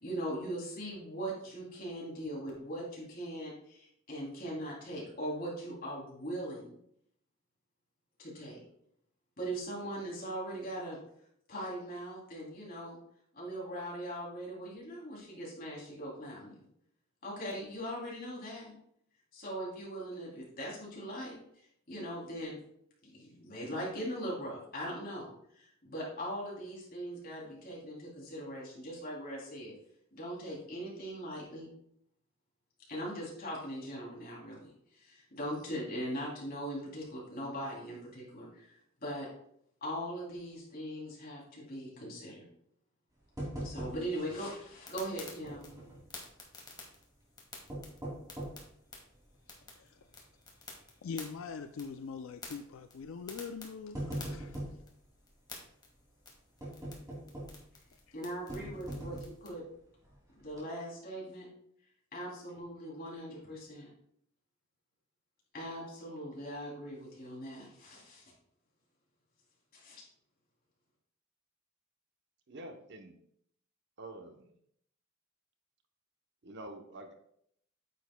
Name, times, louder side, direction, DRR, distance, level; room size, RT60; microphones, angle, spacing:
voice 1, 0.0-6.7 8.2-8.6 9.4-11.0 11.5-13.0 13.3-16.5 17.2-18.8 19.3-21.4 21.9-22.6 23.1-25.3 25.5-29.7 30.1-31.7 32.9-34.7 34.9-38.8 39.0-39.3 39.8-42.4 43.6-45.7 58.1-59.6 60.4-61.5 62.1-63.9 65.5-68.2 69.7-70.0, equal, 45° left, -4 dB, 3.0 m, -40 dB
sound 1, 43.4-44.3 44.6-44.7 45.4-46.1 47.5-48.7 49.3-49.4 50.0-50.3 50.6-50.7 51.8-52.1 53.0-53.2 53.6-54.9 56.6-57.7 58.5-59.5 60.0-60.1 60.5-60.6, right 1 dB, 15° right, 2.6 m, -41 dB
sound 2, 44.8-59.5, left 3 dB, 20° left, 1.6 m, -53 dB
voice 2, 51.0-54.6, left 5 dB, 70° left, 8 dB, 0.4 m, -42 dB
voice 3, 72.5-73.2 74.0-74.5 76.4-77.1, right 1 dB, 55° right, 5 dB, 0.9 m, -47 dB
9.1 x 7.1 x 2.2 m, 0.70 s
head